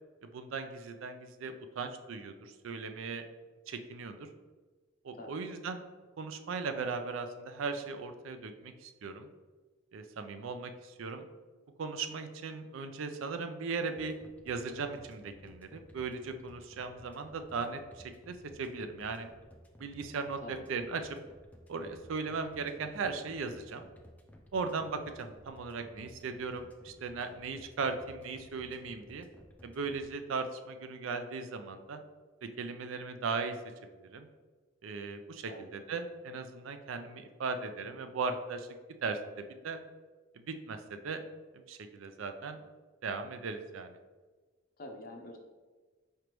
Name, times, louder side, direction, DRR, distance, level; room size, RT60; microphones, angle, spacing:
voice 1, 0.2-3.2 3.7-4.2 5.0-5.8 6.2-9.3 9.9-11.2 11.8-14.1 14.4-17.8 18.2-19.3 19.8-20.4 20.7-21.0 21.7-23.9 24.5-29.3 29.6-32.0 32.6-33.6 34.1-34.3 34.8-35.4 35.7-38.7 39.0-39.8 40.3-41.2 41.7-42.6 43.0-43.9, right 4 dB, 80° right, 7 dB, 0.4 m, -38 dB
sound 1, 14.0-30.1, left 1 dB, 10° left, 0.3 m, -56 dB
voice 2, 44.8-45.4, left 1 dB, 45° left, 2 dB, 0.6 m, -46 dB
5.0 x 3.3 x 3.0 m, 1.4 s
head